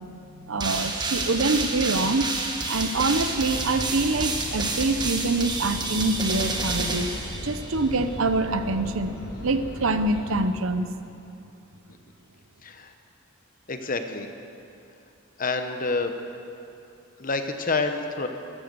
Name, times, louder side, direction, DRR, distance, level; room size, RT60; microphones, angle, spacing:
voice 1, 0.5-2.3 2.7-7.1 7.4-9.2 9.4-10.9, right 2 dB, 65° right, 10 dB, 0.7 m, -25 dB
sound 1, 0.6-7.9, right 3 dB, 20° right, 1.3 m, -29 dB
sound 2, 3.0-10.5, equal, 85° left, 3.7 m, -39 dB
voice 2, 12.6-12.9 13.7-14.3 15.4-16.1 17.2-18.3, left 3 dB, 40° left, 7 dB, 0.9 m, -28 dB
15.0 x 14.0 x 6.8 m, 2.7 s
head